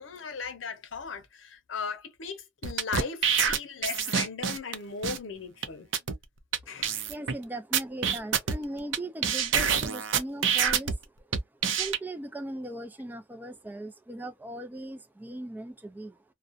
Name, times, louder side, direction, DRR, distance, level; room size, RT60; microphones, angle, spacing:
voice 1, 0.0-5.9 6.7-7.1, left 5 dB, 80° left, 0.7 m, -37 dB
sound 1, 2.6-4.7 5.0-5.2 5.6-5.7 5.9-6.1 6.5-6.6 6.8-7.3 7.7-9.0 9.2-10.9 11.3-12.0, right 7 dB, 70° right, 0.5 m, -26 dB
voice 2, 6.6-16.2, right 1 dB, 10° right, 0.3 m, -39 dB
2.3 x 2.1 x 2.5 m
head